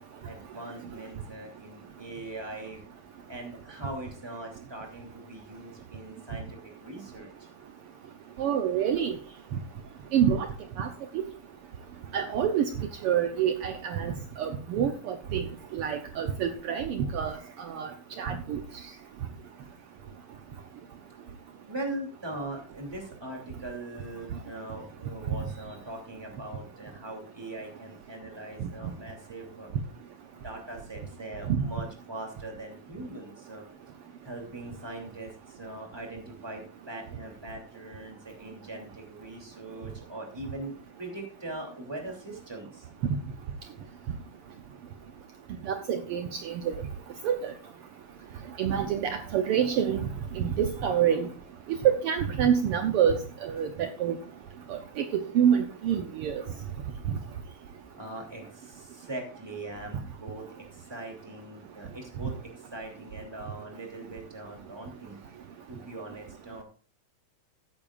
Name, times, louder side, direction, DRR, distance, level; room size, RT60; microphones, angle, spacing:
voice 1, 0.2-2.8 3.3-7.5 21.7-29.7 30.4-33.7 34.2-42.9 58.0-65.2 65.7-66.6, right 1 dB, 10° right, 1 dB, 2.5 m, -41 dB
voice 2, 8.4-9.2 10.1-10.5 10.8-10.9 11.1-11.3 12.1-12.7 13.0-14.1 14.4-15.4 15.7-17.4 17.7-17.9 18.2-18.6 28.6-28.7 31.5-31.6 45.6-46.7 47.2-47.5 48.6-50.0 50.3-51.3 51.8-53.2 53.4-53.7 54.0-54.1 54.7-54.8 55.1-56.4, right 8 dB, 80° right, 6 dB, 1.3 m, -26 dB
15.0 x 8.7 x 2.5 m, 0.37 s
omnidirectional pair, 3.6 m